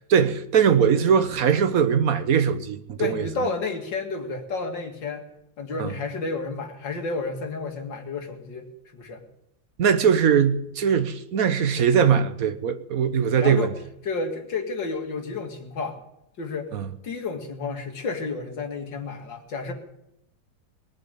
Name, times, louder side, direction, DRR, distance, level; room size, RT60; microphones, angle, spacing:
voice 1, 0.0-3.3 5.8-5.9 9.8-13.7 16.7-16.9, right 7 dB, 55° right, 1.3 m, -21 dB
voice 2, 3.0-5.3 5.6-9.2 13.4-13.7 14.0-16.0 16.4-16.7 17.0-19.7, left 4 dB, 70° left, 2.7 m, -31 dB
20.5 x 7.0 x 9.8 m
omnidirectional pair, 2.1 m